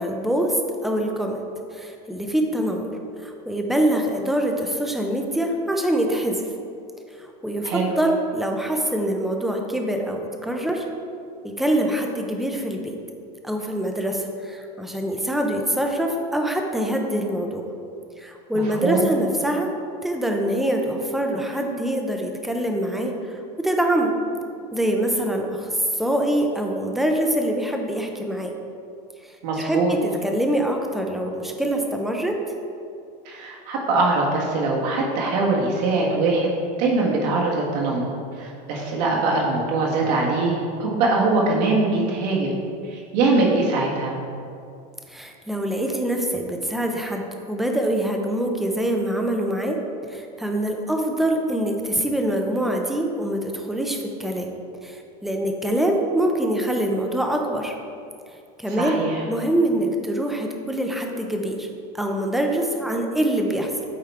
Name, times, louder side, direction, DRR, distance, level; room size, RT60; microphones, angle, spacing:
voice 1, 0.0-1.4 1.7-2.9 3.2-6.5 7.2-10.9 11.4-13.0 13.4-17.6 18.2-19.7 20.0-24.1 24.7-28.5 29.6-32.4 45.1-49.8 50.1-54.5 54.8-57.8 58.6-59.0 59.3-61.7 61.9-63.7, right 1 dB, ahead, 2 dB, 0.4 m, -24 dB
voice 2, 18.5-19.1 29.4-29.9 33.2-36.5 36.8-42.6 42.8-44.1 58.7-59.2, right 3 dB, 80° right, -2 dB, 1.6 m, -22 dB
8.5 x 4.3 x 3.5 m, 2.5 s
supercardioid pair, 160°, 21 cm